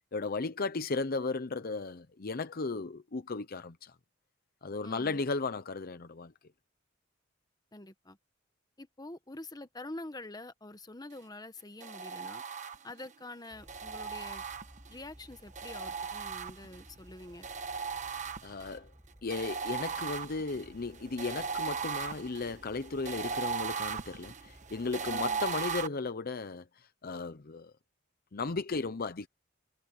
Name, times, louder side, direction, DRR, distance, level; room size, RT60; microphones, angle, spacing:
voice 1, 0.1-3.9 4.6-6.3 18.4-18.9 19.2-27.7 28.3-29.3, left 3 dB, 50° left, 0.7 m, -35 dB
voice 2, 4.8-5.2 7.7-8.2 8.8-12.4 12.8-14.4 14.9-17.5 25.1-25.4, left 2 dB, 20° left, 1.2 m, -46 dB
sound 1, 11.8-13.1 13.7-15.0 15.5-16.9 17.4-18.7 19.3-25.9, right 5 dB, 40° right, 1.3 m, -37 dB
sound 2, 13.5-25.9, equal, 10° right, 7.8 m, -57 dB
head